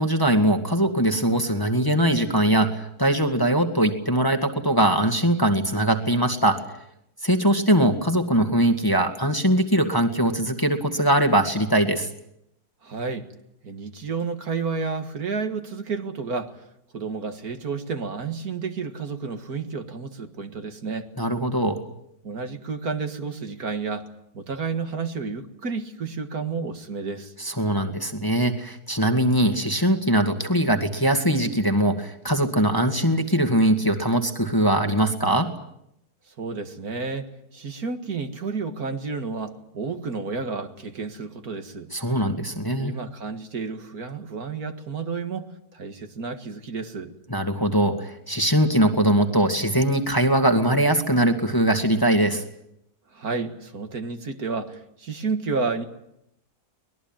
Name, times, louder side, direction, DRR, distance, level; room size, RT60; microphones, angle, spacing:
voice 1, 0.0-6.8 7.2-12.1 21.2-21.8 27.4-35.5 41.9-42.9 47.3-52.4, right 1 dB, 15° left, 4 dB, 1.9 m, -21 dB
voice 2, 12.8-13.3 13.6-16.6 16.9-21.1 22.2-24.1 24.3-27.3 36.4-41.9 42.8-47.1 53.1-55.8, right 4 dB, 65° right, 7 dB, 2.3 m, -31 dB
24.0 x 20.5 x 8.9 m, 0.78 s
omnidirectional pair, 1.7 m